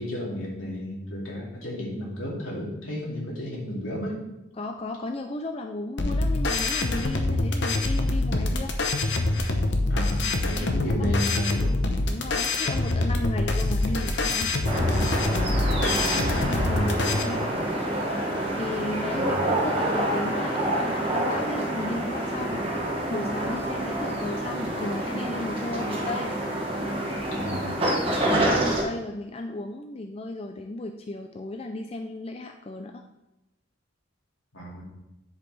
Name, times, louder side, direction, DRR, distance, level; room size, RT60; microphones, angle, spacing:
voice 1, 0.0-4.2 9.9-11.8 15.7-16.4 19.1-19.4 27.3-27.8 34.5-34.8, equal, 80° left, -3 dB, 2.5 m, -33 dB
voice 2, 4.6-8.8 10.6-10.7 12.1-14.6 16.2-17.7 18.5-22.7 23.1-26.3 28.3-33.0, left 2 dB, 30° left, 4 dB, 0.3 m, -34 dB
sound 1, 6.0-17.2, left 2 dB, 55° left, 0.8 m, -25 dB
sound 2, 14.6-28.8, right 1 dB, 25° right, 1.2 m, -27 dB
9.8 x 5.2 x 3.3 m, 0.94 s
head